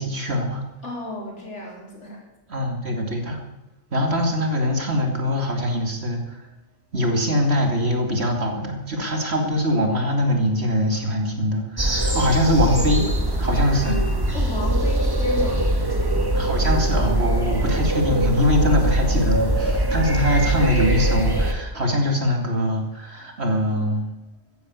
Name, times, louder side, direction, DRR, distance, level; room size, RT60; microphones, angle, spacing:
voice 1, 0.0-0.6 2.5-3.4 3.9-6.4 6.9-13.1 13.4-14.0 16.3-24.1, equal, 45° right, 3 dB, 2.7 m, -22 dB
voice 2, 0.8-2.3 14.3-15.7, left 2 dB, 50° left, -2 dB, 4.3 m, -33 dB
sound 1, 11.8-21.5, right 1 dB, 15° right, 1.6 m, -22 dB
13.5 x 10.5 x 8.2 m, 0.96 s
omnidirectional pair, 1.5 m